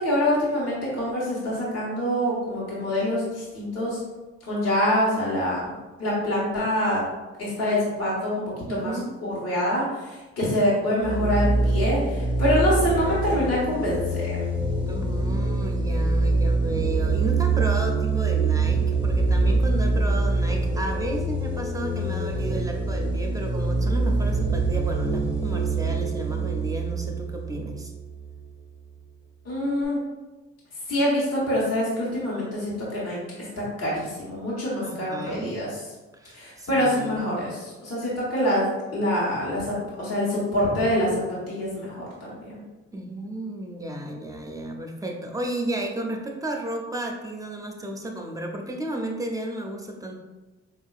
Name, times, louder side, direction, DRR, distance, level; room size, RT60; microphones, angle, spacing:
voice 1, 0.0-4.0 4.4-5.7 6.0-7.0 7.4-8.9 9.2-14.4 29.4-30.0 30.9-33.2 33.5-35.7 36.3-42.5, equal, 55° left, -7 dB, 1.4 m, -25 dB
voice 2, 8.6-9.1 14.9-27.9 34.8-35.5 36.1-37.3 40.2-40.3 42.9-50.1, right 1 dB, 10° right, 2 dB, 0.5 m, -33 dB
sound 1, 11.0-28.4, right 3 dB, 90° left, 1.3 m, -25 dB
4.4 x 2.7 x 2.4 m, 1.2 s
cardioid pair, 90°, 30 cm